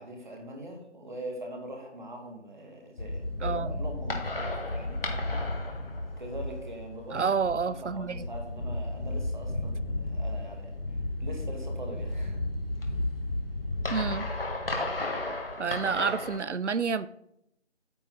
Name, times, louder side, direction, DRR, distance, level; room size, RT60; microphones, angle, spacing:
voice 1, 0.0-5.0 6.2-7.3 7.8-10.8 11.2-12.4, right 1 dB, 40° right, 1 dB, 2.2 m, -42 dB
sound 1, 3.0-16.4, left 2 dB, 50° left, 1.6 m, -33 dB
voice 2, 3.4-3.7 7.1-8.2 13.9-14.3 15.6-17.1, right 5 dB, 75° right, 17 dB, 0.6 m, -29 dB
8.9 x 7.6 x 4.0 m, 0.78 s
figure-of-eight pair, 175°, 36 cm